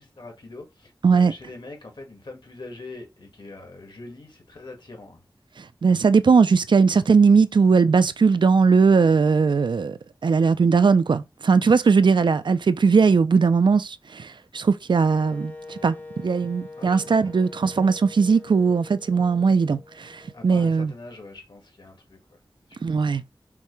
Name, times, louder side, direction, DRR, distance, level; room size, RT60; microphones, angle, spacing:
voice 1, 0.0-5.2 16.8-17.3 20.3-22.4 22.7-22.8, left 2 dB, 65° left, 1.6 m, -43 dB
voice 2, 5.6-20.9 22.8-23.2, right 5 dB, 70° right, 0.3 m, -19 dB
Wind instrument woodwind instrument, 15.1-20.9, left 3 dB, 20° left, 0.7 m, -43 dB
5.8 x 2.2 x 3.0 m
cardioid pair, 40°, 8 cm